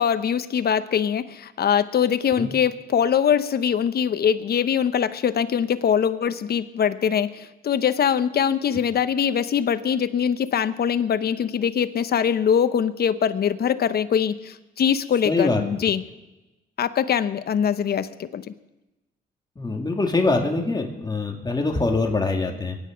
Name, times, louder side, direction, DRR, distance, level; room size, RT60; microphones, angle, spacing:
voice 1, 0.0-16.0 16.8-18.4, left 8 dB, 50° left, 11 dB, 0.9 m, -22 dB
voice 2, 15.2-15.6 19.6-22.8, left 3 dB, 20° left, 2 dB, 2.4 m, -23 dB
23.0 x 10.0 x 5.2 m, 1.0 s
cardioid pair, 90°, 20 cm